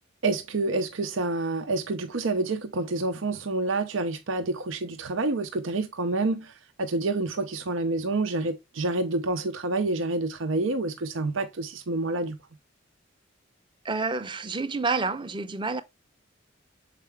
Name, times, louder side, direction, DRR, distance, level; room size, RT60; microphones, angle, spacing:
voice 1, 0.2-6.5 6.8-12.4, right 2 dB, 85° right, 0.7 m, -28 dB
voice 2, 13.8-15.8, right 3 dB, 25° right, 0.6 m, -29 dB
6.7 x 4.6 x 3.4 m
head